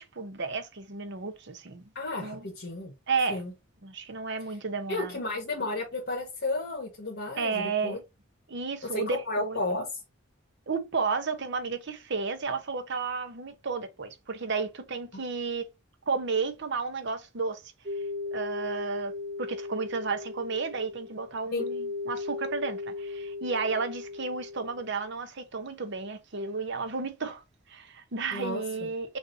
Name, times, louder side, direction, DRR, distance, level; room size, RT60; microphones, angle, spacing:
voice 1, 0.0-1.9 2.2-2.5 3.1-3.4 3.8-5.2 7.4-8.0 8.5-9.6 10.7-15.7 16.1-17.7 18.3-27.4 27.7-29.2, right 4 dB, 60° right, 0.9 m, -32 dB
voice 2, 1.9-2.9 3.3-3.5 4.9-8.0 8.9-10.0 15.1-15.2 21.5-21.7 28.3-28.9, left 2 dB, 55° left, 1.5 m, -33 dB
sound 1, 17.9-25.1, left 3 dB, 40° right, 0.8 m, -37 dB
6.2 x 2.7 x 2.7 m
head